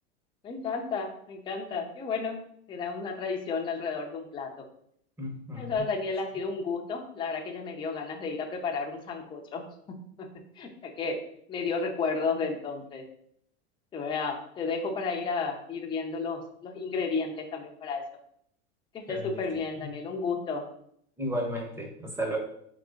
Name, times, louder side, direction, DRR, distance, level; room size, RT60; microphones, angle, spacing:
voice 1, 0.4-2.4 2.7-4.5 5.5-9.6 10.2-10.3 10.6-11.2 11.5-13.0 13.9-18.0 18.9-20.6, left 4 dB, 15° left, 1 dB, 0.5 m, -32 dB
voice 2, 5.2-5.7 19.1-19.4 21.2-22.4, equal, 10° right, 1 dB, 0.8 m, -33 dB
3.9 x 3.0 x 3.6 m, 0.68 s
supercardioid pair, 130°, 32 cm